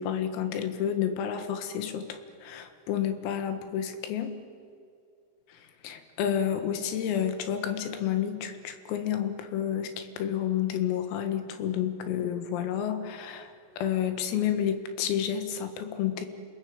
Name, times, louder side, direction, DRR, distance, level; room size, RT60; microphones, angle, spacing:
voice 1, 0.0-4.3 5.5-16.3, left 9 dB, 90° left, 8 dB, 4.4 m, -30 dB
28.5 x 20.5 x 8.8 m, 2.4 s
omnidirectional pair, 5.9 m